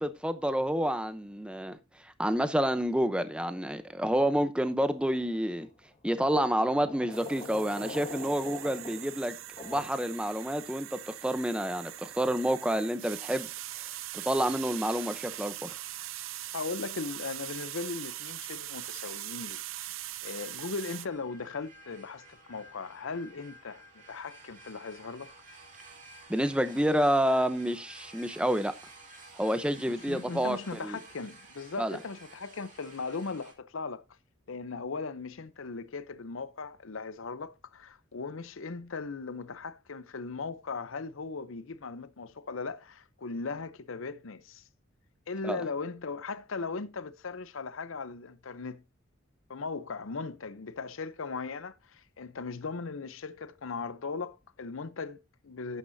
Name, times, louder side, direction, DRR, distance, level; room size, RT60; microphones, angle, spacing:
voice 1, 0.0-5.7 6.0-9.4 9.6-13.5 14.1-15.8 26.3-28.7 29.3-31.0 31.8-32.0 45.4-45.6, equal, 5° right, 0.7 m, -29 dB
sound 1, 5.1-5.5 6.8-9.8, left 2 dB, 30° left, 1.7 m, -43 dB
sound 2, 7.1-21.1, right 14 dB, 70° right, 0.6 m, -41 dB
voice 2, 16.5-19.6 20.2-25.3 29.8-34.0 34.5-44.6 45.3-48.8 49.5-55.8, left 4 dB, 75° left, 0.7 m, -38 dB
sound 3, 20.3-33.5, right 2 dB, 40° right, 2.3 m, -53 dB
12.0 x 9.2 x 2.7 m
head